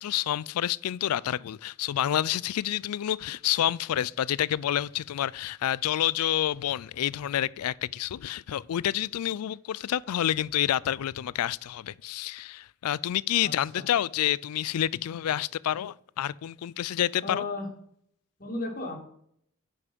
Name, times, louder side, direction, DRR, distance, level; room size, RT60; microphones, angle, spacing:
voice 1, 0.0-17.4, left 11 dB, 85° left, 0.3 m, -28 dB
voice 2, 13.4-13.8 17.2-17.7 18.4-19.0, left 3 dB, 40° left, 2.1 m, -34 dB
9.5 x 5.8 x 5.3 m
head